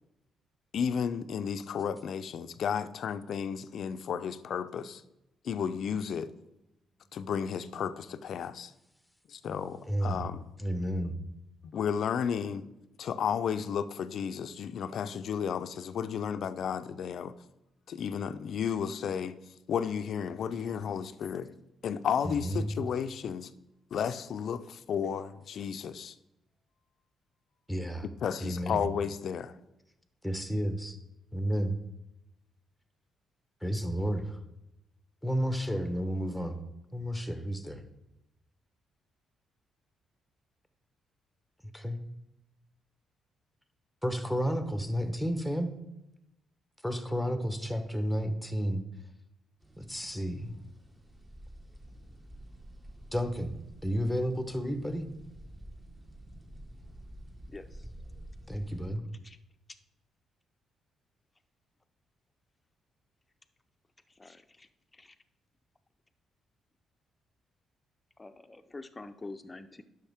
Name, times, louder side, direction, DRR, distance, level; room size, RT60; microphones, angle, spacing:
voice 1, 0.7-5.0 5.4-6.3 7.1-8.7 9.3-10.5 11.7-12.6 13.0-17.3 17.9-19.3 19.7-21.5 21.8-23.5 23.9-26.1 28.2-29.5, left 7 dB, 65° left, 0.5 m, -33 dB
voice 2, 9.9-10.3 10.6-11.2 22.2-22.7 27.7-28.0 28.4-28.8 30.2-31.0 31.3-31.8 33.6-34.4 35.2-36.6 36.9-37.8 41.7-42.0 44.0-45.7 46.8-48.8 49.8-50.6 53.1-53.6 53.8-55.1 58.5-59.0, equal, ahead, 1.0 m, -31 dB
sound 1, 49.6-58.9, right 1 dB, 25° right, 1.7 m, -49 dB
voice 3, 64.2-64.7 64.9-65.1 68.2-69.8, left 3 dB, 20° left, 0.6 m, -46 dB
10.0 x 6.4 x 3.5 m
cardioid pair, 90°, 0 cm